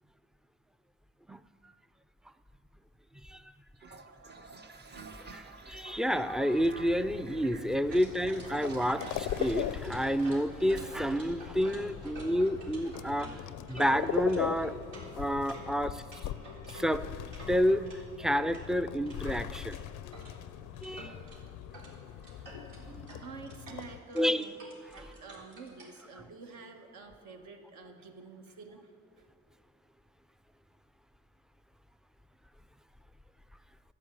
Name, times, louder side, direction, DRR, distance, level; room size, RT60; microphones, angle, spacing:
Toilet flush, 3.8-10.7, right 4 dB, 35° right, 1.0 m, -49 dB
voice 1, 5.3-13.3 13.7-14.7 15.2-16.0 16.7-17.0 17.5-17.8 18.2-19.8 20.8-21.1 24.2-24.5, equal, ahead, 13 dB, 0.4 m, -29 dB
sound 1, 6.6-24.0, left 11 dB, 85° left, 0.5 m, -40 dB
sound 2, 7.9-18.0 18.3-20.3 20.7-21.4 21.7-21.9 22.2-26.0, right 1 dB, 85° right, 3.7 m, -49 dB
voice 2, 22.8-24.5 24.9-29.3, right 4 dB, 70° right, 3 dB, 1.6 m, -49 dB
12.0 x 8.1 x 8.9 m, 2.4 s
cardioid pair, 90°, 30 cm